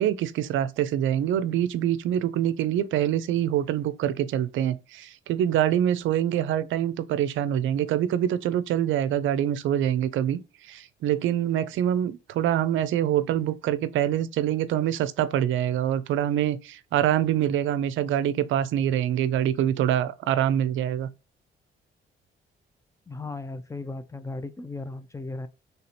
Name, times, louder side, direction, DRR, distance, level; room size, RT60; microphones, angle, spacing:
voice 1, 0.0-10.4 10.7-21.1, right 10 dB, 75° right, 0.5 m, -25 dB
voice 2, 23.1-25.5, left 2 dB, 15° left, 0.4 m, -36 dB
3.4 x 2.7 x 4.2 m
cardioid pair, 90°, 20 cm